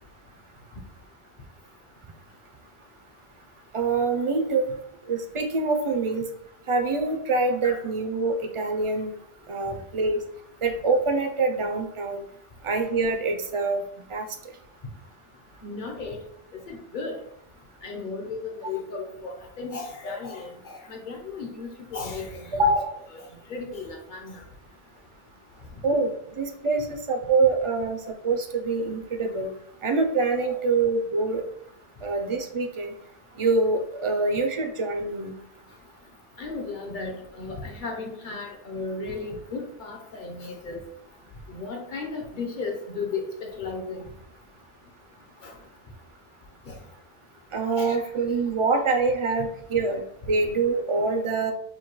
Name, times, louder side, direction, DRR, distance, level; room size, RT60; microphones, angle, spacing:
voice 1, 3.7-4.7 5.1-6.2 6.7-9.1 9.5-10.2 10.6-12.2 12.6-13.8 14.1-14.2 22.6-22.9 25.8-28.0 28.2-29.5 29.8-31.4 32.0-32.9 33.4-35.3 47.5-50.0 50.3-51.5, right 3 dB, 45° right, 4 dB, 0.4 m, -25 dB
voice 2, 15.6-16.2 16.5-17.1 17.8-22.7 23.1-24.4 30.5-30.6 36.4-40.8 41.5-44.1 45.4-45.5 46.7-46.8 47.8-48.0, left 4 dB, 55° left, 1 dB, 0.9 m, -35 dB
5.3 x 2.2 x 3.0 m, 0.78 s
omnidirectional pair, 1.0 m